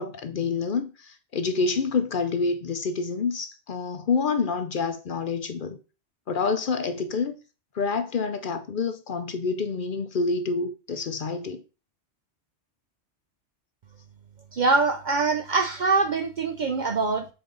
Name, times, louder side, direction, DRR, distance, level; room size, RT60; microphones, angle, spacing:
voice 1, 0.0-5.8 6.3-7.4 7.7-11.6, left 4 dB, 55° left, 0.7 m, -27 dB
voice 2, 14.5-17.3, right 4 dB, 50° right, 0.6 m, -24 dB
7.0 x 4.4 x 3.9 m
omnidirectional pair, 1.2 m